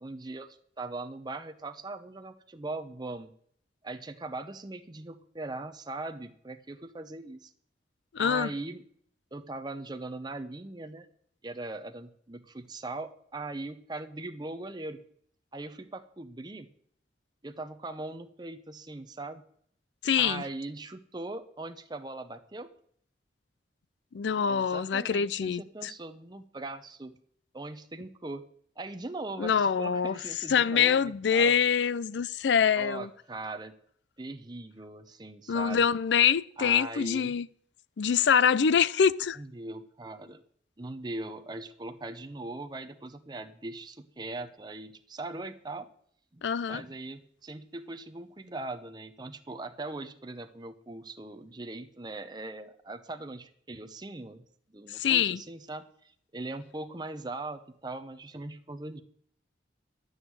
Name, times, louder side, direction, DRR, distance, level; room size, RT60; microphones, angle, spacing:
voice 1, 0.0-3.3 3.8-7.5 8.2-8.8 9.3-11.1 11.4-15.0 15.5-16.7 17.4-19.4 20.2-22.7 24.5-27.1 27.5-28.5 28.8-31.5 32.7-33.7 34.2-35.8 36.6-37.3 39.4-40.4 40.8-45.9 46.3-54.4 54.7-59.0, right 2 dB, 25° right, 0.7 m, -40 dB
voice 2, 8.1-8.5 20.0-20.4 24.1-25.9 29.4-30.1 30.5-33.1 35.5-37.5 38.0-39.4 46.4-46.8 54.9-55.4, left 7 dB, 75° left, 0.4 m, -25 dB
11.5 x 6.4 x 9.4 m
head